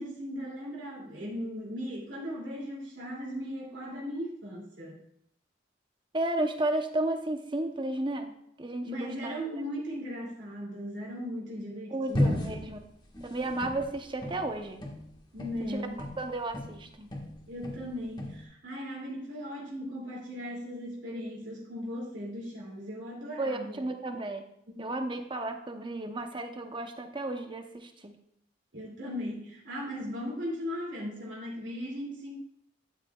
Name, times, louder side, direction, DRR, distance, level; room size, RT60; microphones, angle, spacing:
voice 1, 0.0-5.0 8.8-12.5 15.3-16.1 17.5-23.8 24.7-25.0 28.7-32.3, equal, 75° right, -4 dB, 2.7 m, -38 dB
voice 2, 6.1-8.3 8.6-9.6 10.2-10.3 11.9-12.8 13.2-14.8 15.7-15.8 16.2-17.1 23.4-24.4 24.8-28.2, right 2 dB, 25° right, 5 dB, 0.8 m, -33 dB
sound 1, 12.1-16.8 17.1-18.4, left 1 dB, 25° left, 1.5 m, -33 dB
12.0 x 8.0 x 2.4 m, 0.75 s
head